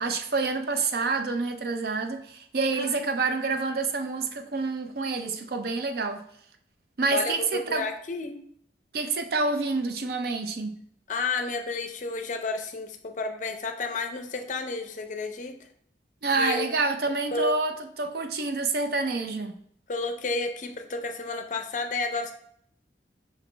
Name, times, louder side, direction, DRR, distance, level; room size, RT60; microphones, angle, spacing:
voice 1, 0.0-6.2 7.0-7.9 8.9-10.7 16.2-19.6, right 3 dB, 55° right, 0.5 m, -28 dB
voice 2, 2.8-3.1 7.1-8.4 11.1-15.6 16.4-16.7 17.3-17.5 19.9-22.3, left 3 dB, 45° left, 0.5 m, -31 dB
5.1 x 3.1 x 3.2 m
head